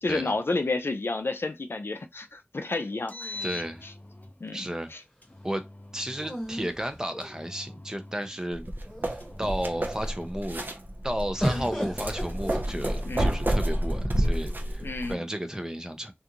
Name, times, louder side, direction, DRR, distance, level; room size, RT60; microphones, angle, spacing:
voice 1, 0.0-3.4 3.8-3.9 4.4-5.0 11.5-11.7 13.1-13.4 14.8-15.2, left 3 dB, 85° left, 0.4 m, -31 dB
Engine, 2.9-4.4 5.2-6.4 7.2-8.5 9.2-10.5 11.2-12.5 13.2-14.4, left 2 dB, 45° left, 0.7 m, -44 dB
sound 1, 3.1-4.2 6.2-7.7 8.5-8.6 8.9-9.4 11.4-13.3 14.2-14.9, equal, 10° left, 1.0 m, -36 dB
voice 2, 3.4-3.9 4.5-4.9 5.4-5.6 5.9-8.7 9.1-10.7 11.0-16.1, equal, 15° right, 0.6 m, -33 dB
sound 2, 8.5-15.1, right 1 dB, 55° right, 0.6 m, -29 dB
2.5 x 2.4 x 2.8 m
wide cardioid pair, 40°, 4 cm